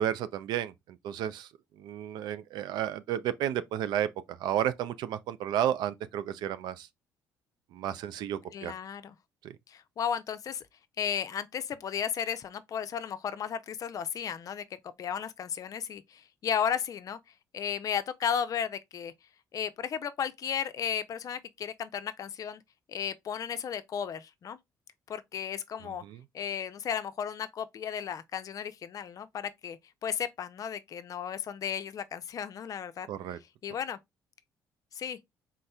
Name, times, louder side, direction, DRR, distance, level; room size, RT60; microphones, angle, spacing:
voice 1, 0.0-1.5 1.8-6.9 7.7-8.7 9.4-9.6 25.8-26.2 33.1-33.4, right 10 dB, 75° right, 0.5 m, -32 dB
voice 2, 8.5-9.2 9.7-10.6 11.0-17.2 17.5-19.1 19.5-22.6 22.9-24.6 25.1-26.0 26.3-33.1 33.6-34.0 34.9-35.2, left 8 dB, 55° left, 0.5 m, -34 dB
4.1 x 3.8 x 2.3 m
supercardioid pair, 80°, 7 cm